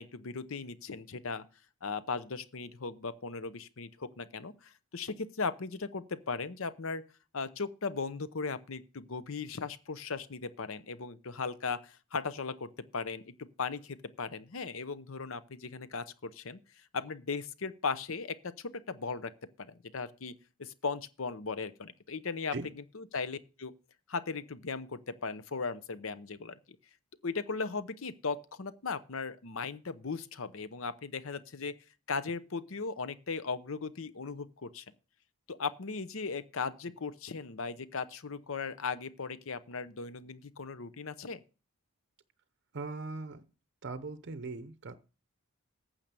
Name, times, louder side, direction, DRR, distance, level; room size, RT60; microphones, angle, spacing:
voice 1, 0.0-1.4 1.8-7.0 7.3-16.6 16.9-19.3 19.6-20.3 20.6-22.5 22.9-23.7 24.1-26.6 27.2-31.8 32.1-34.8 35.5-41.4, left 4 dB, 60° left, 0.8 m, -37 dB
voice 2, 42.7-43.5 43.8-44.9, right 3 dB, 50° right, 0.7 m, -39 dB
9.0 x 6.5 x 6.9 m
head